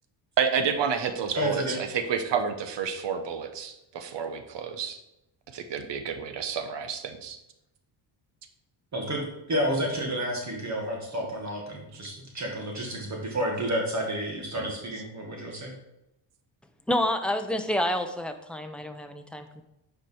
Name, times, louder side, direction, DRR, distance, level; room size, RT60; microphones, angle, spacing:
voice 1, 0.4-5.0 5.5-7.4 14.6-14.7, right 6 dB, 65° right, 8 dB, 1.1 m, -30 dB
voice 2, 1.3-1.8 8.9-15.7, equal, 35° right, 0 dB, 2.1 m, -30 dB
voice 3, 16.9-19.6, left 1 dB, ahead, 6 dB, 0.7 m, -28 dB
9.2 x 5.1 x 4.6 m, 0.86 s
cardioid pair, 115°, 46 cm